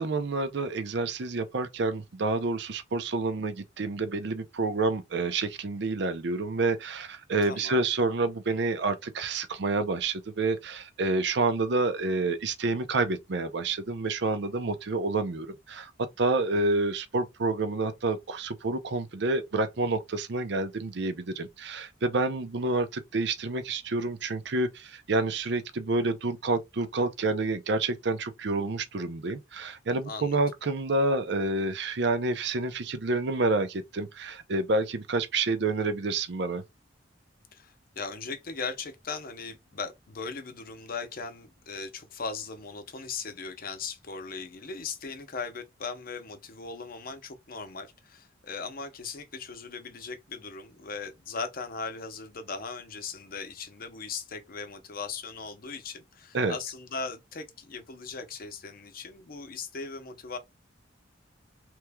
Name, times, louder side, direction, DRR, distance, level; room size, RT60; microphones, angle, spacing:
voice 1, 0.0-15.9 16.2-36.6 56.3-56.5, right 3 dB, 65° right, 0.6 m, -28 dB
voice 2, 7.4-7.8 30.1-30.4 37.5-60.4, left 4 dB, 50° left, 0.7 m, -38 dB
3.4 x 3.1 x 2.2 m
head